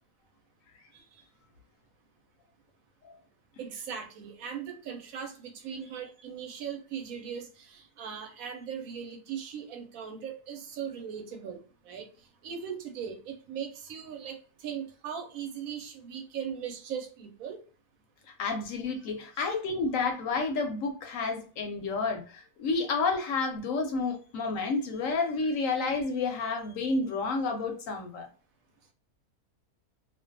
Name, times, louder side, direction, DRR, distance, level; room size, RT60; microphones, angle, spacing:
voice 1, 3.6-12.1 12.4-17.6, right 7 dB, 70° right, 4 dB, 1.0 m, -39 dB
voice 2, 18.4-28.3, left 4 dB, 70° left, 4 dB, 0.9 m, -30 dB
2.5 x 2.2 x 2.5 m, 0.37 s
omnidirectional pair, 1.6 m